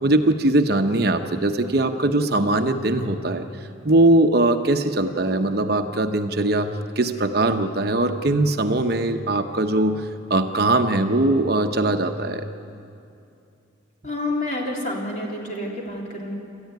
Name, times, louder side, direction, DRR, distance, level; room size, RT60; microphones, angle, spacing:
voice 1, 0.0-3.5 3.8-12.5, right 2 dB, 50° right, 6 dB, 0.9 m, -21 dB
voice 2, 14.0-16.3, left 1 dB, 40° left, -2 dB, 3.6 m, -28 dB
28.5 x 13.5 x 9.4 m, 2.6 s
head